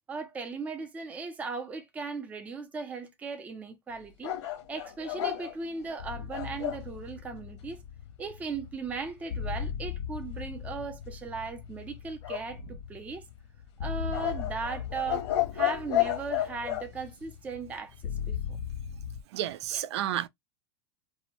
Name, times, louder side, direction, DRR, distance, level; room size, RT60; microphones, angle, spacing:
voice 1, 0.1-4.3 4.7-7.8 8.2-13.2 13.8-15.3 15.5-18.6 19.7-19.8, right 4 dB, 10° right, 0.4 m, -37 dB
sound 1, 4.2-6.9 12.2-13.1 14.1-16.9, left 13 dB, 85° left, 1.1 m, -31 dB
sound 2, 6.0-19.2, left 7 dB, 65° left, 0.4 m, -39 dB
voice 2, 19.3-20.3, right 12 dB, 70° right, 0.4 m, -31 dB
2.6 x 2.1 x 2.9 m
supercardioid pair, 160°, 15 cm